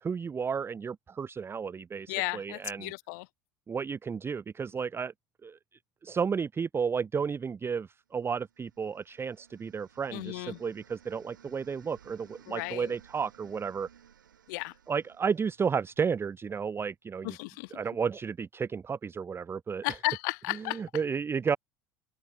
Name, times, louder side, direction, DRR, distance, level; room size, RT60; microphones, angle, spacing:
voice 1, 0.0-2.9 3.7-5.1 5.4-5.6 6.0-13.9 14.9-17.4 17.7-19.9 20.5-21.6, right 6 dB, 25° right, 0.6 m, -32 dB
voice 2, 2.1-3.2 10.1-10.6 12.5-12.9 14.5-14.7 17.2-17.7 19.8-20.8, left 27 dB, 70° left, 0.8 m, -34 dB
sound 1, 8.3-16.3, right 9 dB, 85° right, 4.9 m, -58 dB
hypercardioid pair, 75°, 10 cm